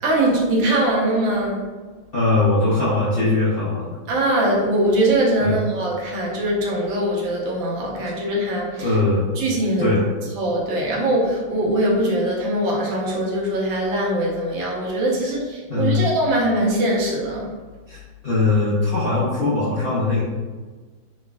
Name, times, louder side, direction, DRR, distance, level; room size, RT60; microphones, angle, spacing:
voice 1, 0.0-1.6 4.1-9.0 9.4-9.9 10.3-17.5, right 1 dB, 80° right, -3 dB, 1.5 m, -22 dB
voice 2, 2.1-4.0 5.4-5.6 8.8-9.2 9.8-10.0 15.7-16.0 17.9-20.2, left 2 dB, 70° left, -10 dB, 0.5 m, -20 dB
3.4 x 3.0 x 2.2 m, 1.4 s
omnidirectional pair, 2.0 m